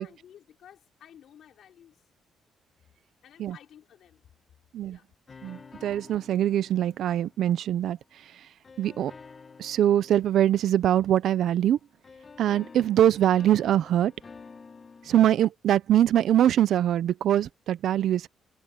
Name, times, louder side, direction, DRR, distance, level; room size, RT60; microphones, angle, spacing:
voice 1, 0.0-2.0 3.2-4.2 4.9-5.1, left 10 dB, 70° left, 4.4 m, -53 dB
sound 1, 5.3-7.9 8.6-11.7 12.0-15.3, left 5 dB, 35° left, 1.4 m, -50 dB
voice 2, 5.4-8.5 8.8-9.1 9.6-11.8 12.4-14.1 15.0-18.3, right 11 dB, 75° right, 0.7 m, -23 dB
cardioid pair, 90°, 0 cm